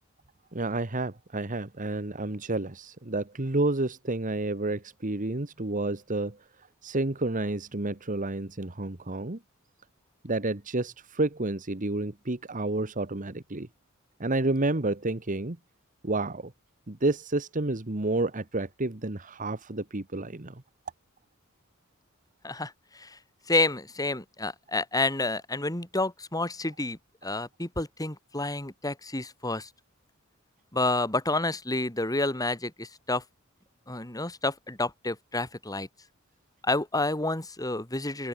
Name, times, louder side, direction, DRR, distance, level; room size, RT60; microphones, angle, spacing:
voice 1, 0.5-6.4 6.8-9.4 10.2-13.7 14.2-15.6 16.0-16.5 16.9-20.6, right 2 dB, 40° right, 1.5 m, -30 dB
voice 2, 22.4-23.2 23.5-29.7 30.7-33.2 33.9-35.9 36.6-38.3, left 2 dB, 20° left, 3.1 m, -29 dB
open air
head